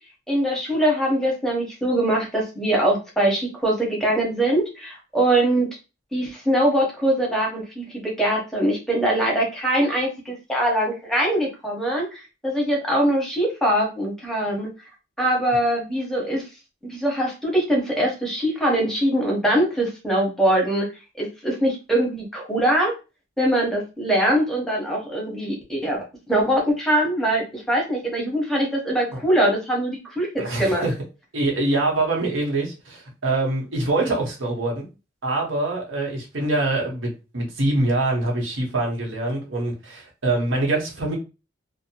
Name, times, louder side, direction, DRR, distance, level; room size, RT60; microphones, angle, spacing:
voice 1, 0.3-5.7 6.1-14.7 15.2-16.5 16.8-20.9 21.2-22.9 23.4-30.8, right 1 dB, ahead, -1 dB, 0.7 m, -22 dB
voice 2, 30.4-30.9 31.3-34.9 35.2-41.2, right 2 dB, 90° right, -1 dB, 1.0 m, -24 dB
2.6 x 2.1 x 2.7 m, 0.30 s
head